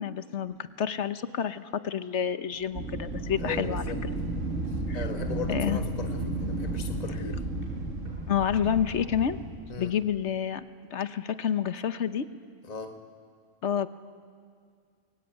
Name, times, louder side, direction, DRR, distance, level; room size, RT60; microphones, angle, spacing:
voice 1, 0.0-3.8 4.9-5.0 5.5-5.8 8.3-9.4 9.8-10.6 10.9-12.3 13.6-13.9, left 8 dB, 65° left, 12 dB, 1.2 m, -29 dB
Walk footsteps, 2.5-10.4, right 1 dB, 45° right, 6.7 m, -50 dB
Wind, 2.7-9.7, right 2 dB, 70° right, 2.5 m, -33 dB
voice 2, 3.4-4.0 4.7-7.4 9.7-9.9 12.6-13.0, left 5 dB, 30° left, 4 dB, 1.6 m, -38 dB
28.5 x 22.5 x 9.2 m, 2.1 s
omnidirectional pair, 1.3 m